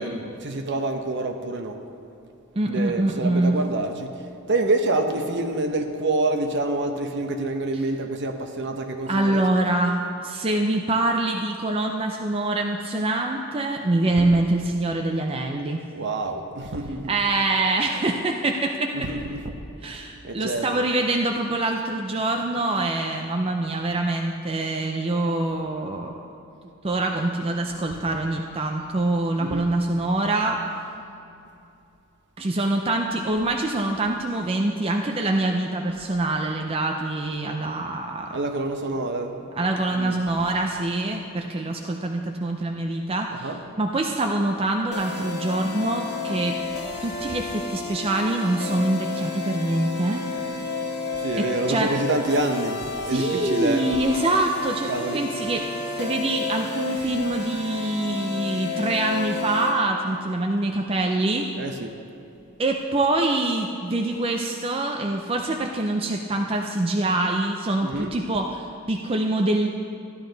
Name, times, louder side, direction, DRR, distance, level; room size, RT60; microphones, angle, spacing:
voice 1, 0.0-1.8 2.7-4.1 4.5-9.4 14.1-14.3 15.9-17.2 18.9-19.5 20.2-20.8 29.4-29.7 38.3-39.4 39.9-40.2 43.3-43.7 51.2-53.9 54.9-55.2 61.6-61.9 67.8-68.2, right 2 dB, 55° right, 5 dB, 0.8 m, -27 dB
voice 2, 2.6-3.5 9.1-15.8 17.1-19.1 19.8-26.1 26.8-30.6 32.4-38.4 39.5-43.5 43.8-46.6 47.0-50.2 51.4-51.9 53.1-55.7 56.0-61.5 62.6-69.7, right 2 dB, 25° right, 2 dB, 0.5 m, -25 dB
sound 1, 44.9-59.8, left 4 dB, 50° left, 1.6 m, -31 dB
14.0 x 10.5 x 3.9 m, 2.7 s
head